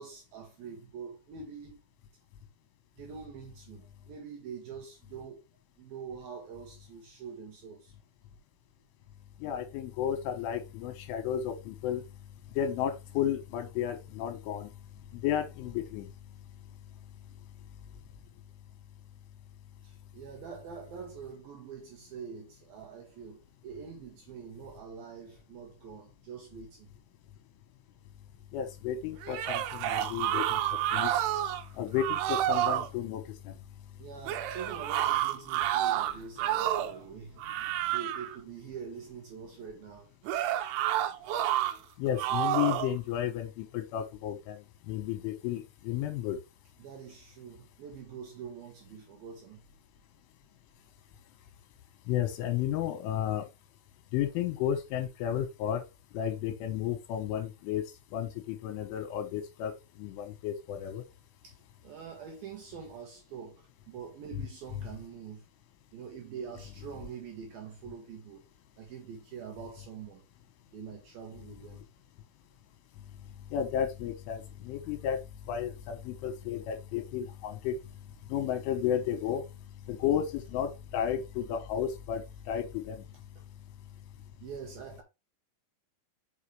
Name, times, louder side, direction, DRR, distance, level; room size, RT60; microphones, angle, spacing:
voice 1, 0.0-1.8 3.0-5.4 5.8-7.9 19.8-26.9 34.0-40.1 46.8-49.6 61.4-61.6 61.8-65.4 65.9-68.4 68.8-70.3 70.7-71.8 83.4-83.5 84.4-85.0, right 6 dB, 70° right, 2.4 m, -45 dB
voice 2, 9.4-12.0 12.6-14.7 15.1-16.1 28.5-30.6 30.9-31.1 31.8-33.6 42.0-46.4 52.1-53.5 54.1-55.8 56.1-57.8 58.1-59.7 60.0-61.0 73.5-75.2 75.5-77.8 78.3-79.4 79.9-83.1, left 10 dB, 85° left, 3.8 m, -32 dB
sound 1, 29.2-31.6 32.0-32.9 34.3-37.0 37.4-38.4 40.3-41.7 42.2-42.9, right 12 dB, 90° right, 3.1 m, -29 dB
6.5 x 5.8 x 3.2 m
omnidirectional pair, 5.6 m